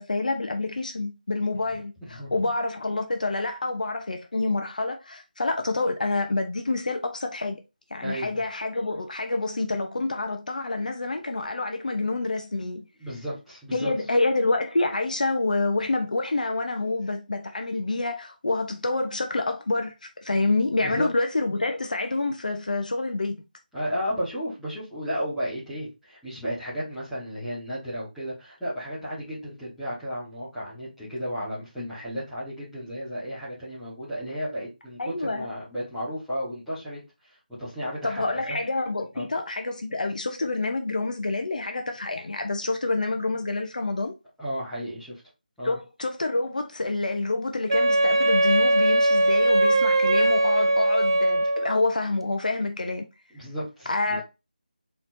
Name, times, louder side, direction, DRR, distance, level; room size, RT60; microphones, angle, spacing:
voice 1, 0.0-7.6 7.9-12.8 13.7-23.4 35.0-35.5 38.0-44.1 45.6-53.0 53.9-54.2, left 2 dB, 55° left, 0.8 m, -27 dB
voice 2, 8.0-8.4 13.0-13.9 20.4-20.5 20.8-21.1 23.7-37.0 37.6-38.6 39.1-39.2 44.4-45.2 45.6-45.8 53.3-54.2, equal, ahead, 1.3 m, -33 dB
Wind instrument woodwind instrument, 47.7-51.8, right 1 dB, 35° right, 0.4 m, -20 dB
4.1 x 4.0 x 2.6 m
figure-of-eight pair, 175°, 5 cm